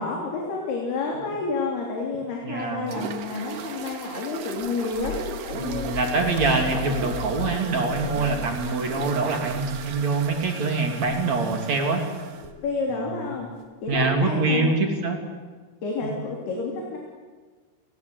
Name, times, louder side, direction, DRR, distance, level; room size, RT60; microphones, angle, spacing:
voice 1, 0.0-5.9 8.1-8.4 12.4-13.5 13.8-14.7 15.8-17.0, left 4 dB, 70° left, -1 dB, 5.4 m, -30 dB
voice 2, 2.4-2.9 5.5-12.0 12.9-13.3 13.9-15.2 16.0-16.1, right 3 dB, 45° right, 4 dB, 3.7 m, -24 dB
sound 1, 2.9-12.5, right 7 dB, 60° right, 3.0 m, -37 dB
sound 2, 4.6-10.5 10.9-11.3 12.4-12.7 13.9-14.3, left 3 dB, 50° left, 1.5 m, -38 dB
sound 3, 6.4-8.0, right 2 dB, 20° right, 3.4 m, -41 dB
30.0 x 21.5 x 8.0 m, 1.4 s
omnidirectional pair, 4.9 m